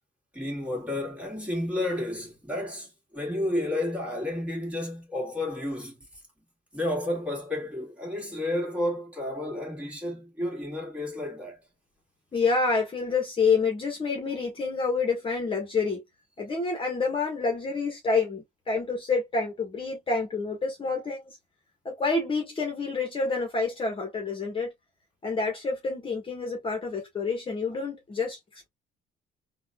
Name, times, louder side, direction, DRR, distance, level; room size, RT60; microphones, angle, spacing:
voice 1, 0.3-6.0 6.7-11.6, left 1 dB, 5° right, 2.1 m, -31 dB
voice 2, 12.3-16.0 16.4-21.4 21.8-24.7 25.2-28.4, left 4 dB, 30° left, 1.3 m, -28 dB
3.8 x 2.6 x 2.3 m
cardioid pair, 110°, 17 cm